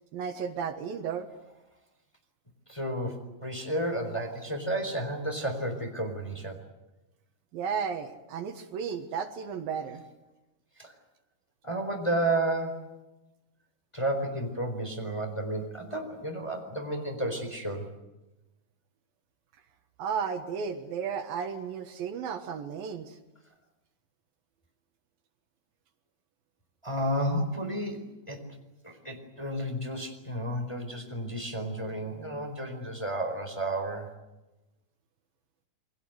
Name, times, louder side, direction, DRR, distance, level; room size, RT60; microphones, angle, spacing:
voice 1, 0.1-1.3 7.5-10.0 20.0-23.2, right 6 dB, 70° right, 7 dB, 3.1 m, -34 dB
voice 2, 2.7-6.6 10.8-10.9 11.6-13.0 13.9-17.9 26.8-28.4 28.8-34.1, right 1 dB, 10° left, 4 dB, 3.7 m, -32 dB
28.5 x 23.0 x 8.0 m, 1.0 s
omnidirectional pair, 4.5 m